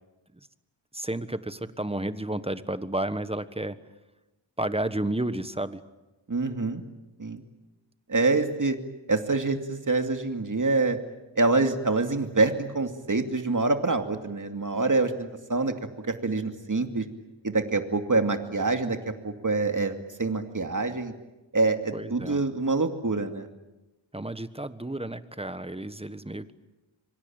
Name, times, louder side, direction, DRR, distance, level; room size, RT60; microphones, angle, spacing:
voice 1, 0.9-3.8 4.6-5.8 21.9-22.4 24.1-26.5, right 1 dB, 10° right, 12 dB, 1.3 m, -31 dB
voice 2, 6.3-6.8 7.2-7.4 8.1-8.8 9.1-11.0 11.4-15.7 16.0-17.0 17.4-19.0 19.2-21.1 21.5-23.4, right 3 dB, 40° right, 6 dB, 2.6 m, -26 dB
25.5 x 25.0 x 8.9 m, 1.1 s
wide cardioid pair, 80°, 46 cm